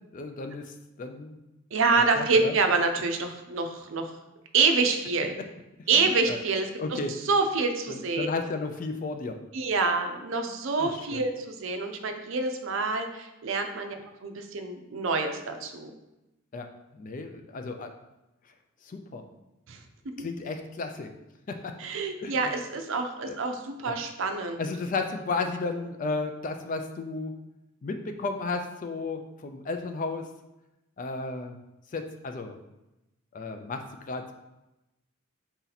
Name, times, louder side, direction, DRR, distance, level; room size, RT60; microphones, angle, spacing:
voice 1, 0.1-1.4 2.2-2.6 5.8-6.4 6.8-7.1 7.9-9.4 10.8-11.2 16.5-16.7 16.9-17.9 18.8-19.2 20.2-21.1 21.5-21.8 22.2-22.5 23.2-23.4 23.9-24.0 24.6-27.4 27.8-30.3 31.0-31.6 31.9-32.6 33.3-34.3, left 3 dB, 40° left, 6 dB, 0.4 m, -33 dB
voice 2, 1.7-4.1 4.5-5.3 5.9-7.0 7.3-8.3 9.5-14.0 14.2-15.9 19.7-19.8 20.2-20.3 21.8-24.6, right 4 dB, 65° right, 6 dB, 0.5 m, -27 dB
4.1 x 2.8 x 3.9 m, 0.96 s
head